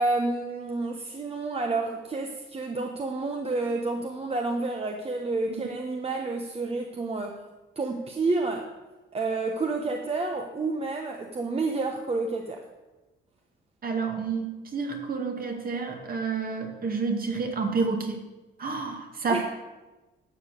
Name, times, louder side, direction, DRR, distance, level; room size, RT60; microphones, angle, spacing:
voice 1, 0.0-7.4 7.8-8.7 9.1-12.6 19.3-19.4, right 3 dB, 30° right, 3 dB, 1.2 m, -29 dB
voice 2, 13.8-18.2 18.6-19.4, right 4 dB, 45° right, 3 dB, 2.2 m, -29 dB
12.0 x 7.3 x 6.6 m, 1.1 s
cardioid pair, 90°, 20 cm